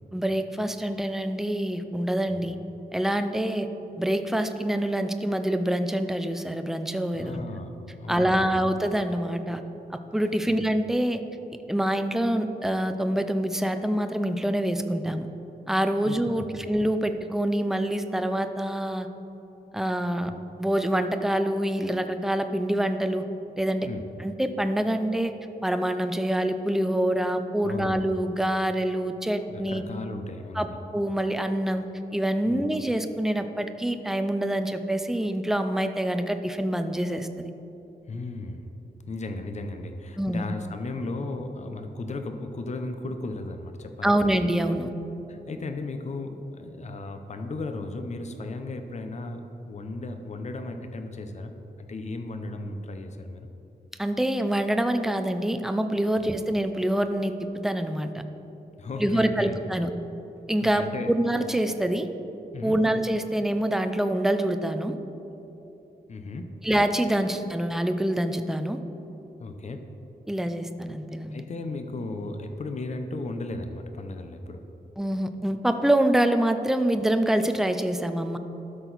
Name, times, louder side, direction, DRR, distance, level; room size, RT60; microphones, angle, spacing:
voice 1, 0.1-2.6 2.9-3.7 4.0-7.4 8.1-9.6 9.9-11.2 11.7-15.3 15.7-19.1 19.7-20.3 20.6-23.3 23.6-23.9 24.2-25.3 25.6-29.8 30.6-30.7 30.9-31.8 32.1-37.5 40.2-40.4 44.0-44.9 54.0-57.3 57.6-58.1 59.0-59.9 60.5-62.1 62.6-64.9 66.6-68.8 70.3-71.4 75.0-78.4, right 1 dB, ahead, 8 dB, 0.4 m, -26 dB
voice 2, 7.2-7.7 8.0-8.6 10.5-10.6 16.0-16.2 16.5-16.6 23.9-24.0 27.6-28.1 29.5-30.8 32.5-32.6 38.1-38.6 39.1-44.2 45.3-49.4 49.7-51.5 51.8-53.5 58.8-59.5 60.6-61.1 62.5-62.8 66.1-66.6 69.4-69.9 71.3-74.6, left 2 dB, 45° left, 7 dB, 0.6 m, -35 dB
12.5 x 6.1 x 4.0 m, 3.0 s
wide cardioid pair, 145°, 17 cm